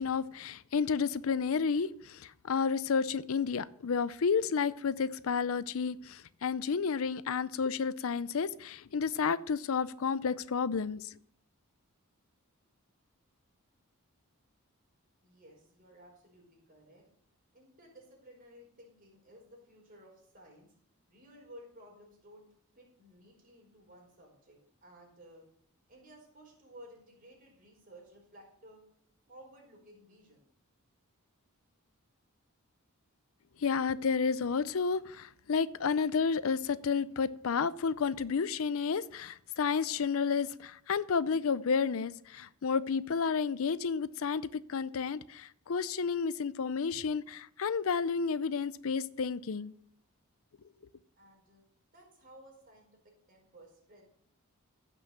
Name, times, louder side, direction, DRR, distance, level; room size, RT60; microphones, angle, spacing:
voice 1, 0.0-11.1 33.6-49.7, left 5 dB, 65° left, 0.5 m, -31 dB
voice 2, 15.2-17.0 17.5-20.7 21.1-22.5 22.7-25.5 25.9-28.8 29.3-30.4 51.1-51.6 51.9-53.0 53.3-54.1, equal, 40° right, 4.9 m, -56 dB
15.5 x 6.2 x 6.6 m
head